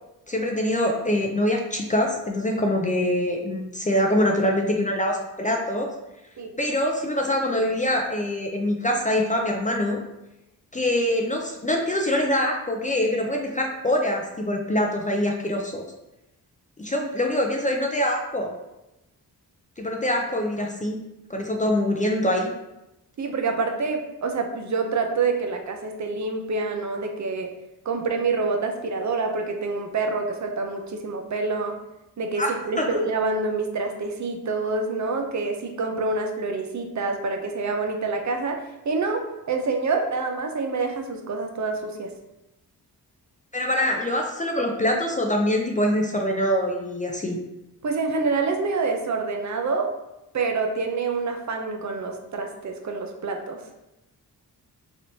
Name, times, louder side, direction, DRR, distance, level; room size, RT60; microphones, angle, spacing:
voice 1, 0.3-5.9 6.6-10.0 10.7-15.8 16.8-18.5 19.8-21.0 21.3-22.5 32.4-32.5 32.8-33.0 43.5-47.4, left 1 dB, 20° left, 1 dB, 0.4 m, -24 dB
voice 2, 23.2-27.5 27.9-31.7 32.2-42.1 47.8-49.9 50.3-53.6, right 4 dB, 50° right, 3 dB, 0.5 m, -27 dB
3.3 x 2.8 x 2.7 m, 0.94 s
cardioid pair, 70°, 38 cm